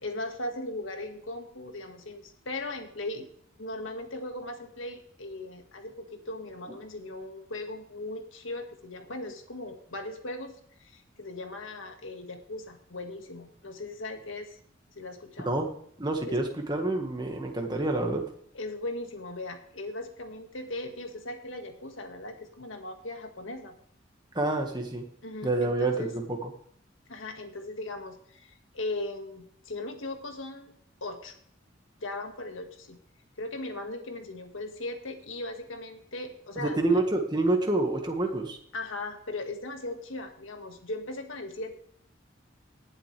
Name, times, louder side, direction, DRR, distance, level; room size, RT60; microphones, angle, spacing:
voice 1, 0.0-3.3 3.6-14.6 15.0-15.5 16.3-16.4 18.5-23.8 25.2-26.1 27.1-31.3 32.0-33.0 33.4-37.0 38.7-41.8, left 2 dB, 90° left, 5 dB, 1.8 m, -38 dB
voice 2, 16.0-18.2 24.3-25.0 25.4-26.5 36.6-38.6, right 2 dB, 20° right, 3 dB, 1.7 m, -27 dB
19.0 x 7.6 x 3.4 m, 0.65 s
head